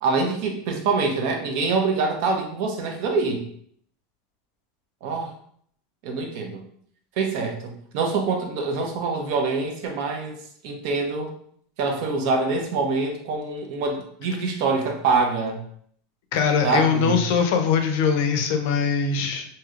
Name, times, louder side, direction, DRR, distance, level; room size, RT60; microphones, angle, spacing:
voice 1, 0.0-3.4 5.0-5.3 6.0-6.6 7.2-10.4 10.6-11.3 11.8-15.6 16.6-17.2, right 4 dB, 55° right, 3 dB, 0.6 m, -25 dB
voice 2, 16.3-19.5, left 6 dB, 60° left, 6 dB, 0.5 m, -21 dB
3.1 x 2.7 x 2.4 m, 0.64 s
supercardioid pair, 160°, 0 cm